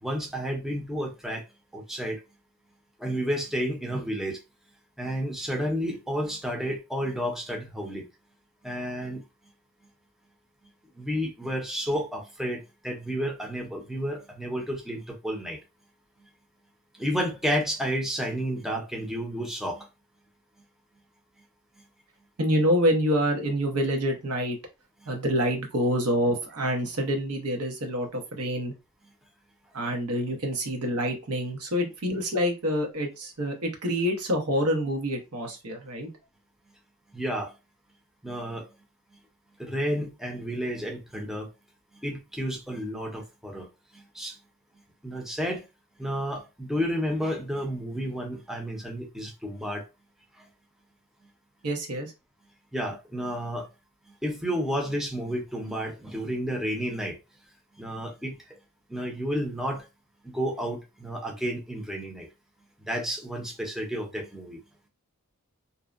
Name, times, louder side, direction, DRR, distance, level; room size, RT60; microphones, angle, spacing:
voice 1, 0.0-1.4 1.7-2.2 3.0-4.4 5.0-8.0 8.6-9.2 11.0-15.6 17.0-19.9 37.1-37.5 38.2-38.7 39.6-41.5 42.0-43.7 43.9-44.3 45.0-45.6 46.0-49.8 52.7-53.7 54.2-57.2 57.8-58.6 58.9-59.9 60.2-62.3 62.9-64.6, equal, ahead, 0.5 m, -31 dB
voice 2, 22.4-24.6 25.1-28.7 29.7-36.1 51.6-52.1, equal, 90° right, 0.8 m, -27 dB
2.6 x 2.0 x 2.4 m
head